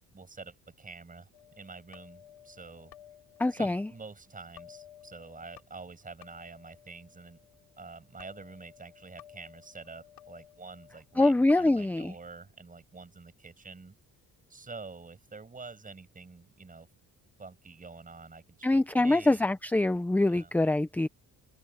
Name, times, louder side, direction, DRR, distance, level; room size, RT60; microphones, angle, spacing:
voice 1, 0.1-1.3 1.6-2.9 3.5-7.4 7.8-13.9 14.5-16.9 17.4-19.4 20.2-20.5, right 4 dB, 20° right, 6.9 m, -47 dB
sound 1, 1.3-11.9, left 11 dB, 80° left, 3.6 m, -56 dB
voice 2, 3.4-3.9 11.2-12.1 18.6-21.1, left 2 dB, 5° left, 0.5 m, -24 dB
open air
cardioid pair, 135°, 36 cm